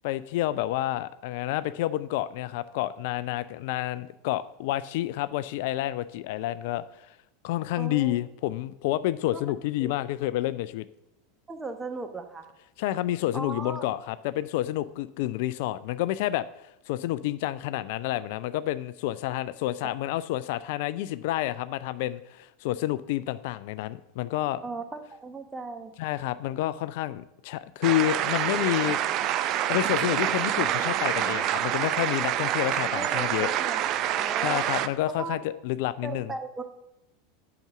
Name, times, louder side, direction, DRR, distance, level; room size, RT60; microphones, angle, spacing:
voice 1, 0.0-7.2 7.4-10.9 12.8-16.5 16.9-24.6 26.0-29.0 29.7-33.5 34.4-36.3, left 14 dB, 60° left, 15 dB, 0.3 m, -29 dB
voice 2, 7.8-8.2 9.3-9.4 9.8-9.9 11.5-12.5 13.3-13.9 24.6-25.9 32.9-33.8 34.1-34.6 35.1-35.4 36.0-36.6, right 3 dB, 15° right, 7 dB, 1.1 m, -37 dB
sound 1, 27.8-34.9, right 11 dB, 45° right, 0.5 m, -27 dB
7.9 x 5.9 x 6.7 m, 0.89 s
figure-of-eight pair, 85°, 0 cm